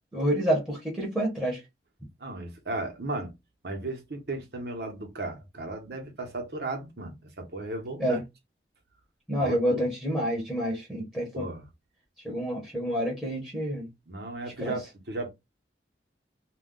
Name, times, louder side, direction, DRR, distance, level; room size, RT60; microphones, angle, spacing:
voice 1, 0.1-1.6 8.0-8.2 9.3-11.5 12.2-13.9 14.6-14.8, equal, 5° left, 0.8 m, -28 dB
voice 2, 2.2-3.3 3.6-8.2 9.4-9.8 11.3-11.6 14.1-15.3, right 2 dB, 70° right, 0.9 m, -35 dB
2.3 x 2.2 x 3.6 m
head